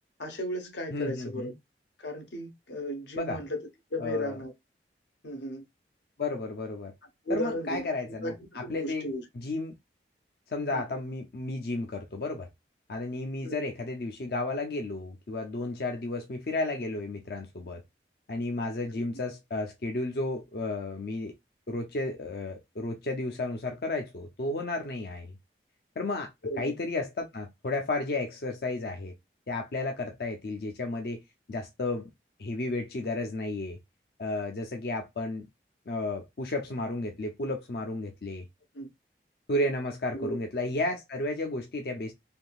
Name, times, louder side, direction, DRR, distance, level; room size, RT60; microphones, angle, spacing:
voice 1, 0.2-1.5 2.0-4.5 5.2-5.6 7.2-7.9 8.2-8.3 8.6-9.2 10.7-10.8 13.4-13.5 18.9-19.0 26.4-26.7 38.7-38.9 40.1-40.4, equal, 85° left, 1.0 m, -35 dB
voice 2, 0.9-1.5 3.2-3.4 4.0-4.4 6.2-6.9 7.3-9.1 9.3-9.7 10.5-12.5 12.9-17.8 18.3-21.3 21.7-25.3 26.0-29.1 29.5-31.2 31.5-32.1 32.4-33.8 34.2-35.5 35.9-38.4 39.5-42.1, left 2 dB, 60° left, 0.5 m, -33 dB
3.5 x 2.6 x 2.3 m
head